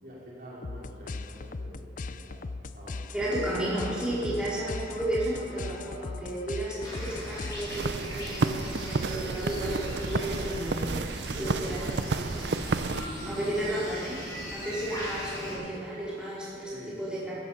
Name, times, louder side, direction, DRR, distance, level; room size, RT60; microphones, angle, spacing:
voice 1, 0.0-1.8 2.1-3.1 4.2-4.3 11.3-12.0 12.8-13.4 16.6-17.0, equal, 50° right, -6 dB, 4.3 m, -45 dB
sound 1, 0.6-8.1, left 3 dB, 45° left, 0.4 m, -39 dB
voice 2, 3.1-12.5 13.3-14.2 14.5-17.4, right 1 dB, 5° right, -9 dB, 4.2 m, -33 dB
sound 2, 6.8-15.5, equal, 25° left, 4.4 m, -39 dB
sound 3, 7.7-13.1, right 3 dB, 65° right, 0.6 m, -31 dB
16.0 x 14.0 x 5.7 m, 2.4 s
head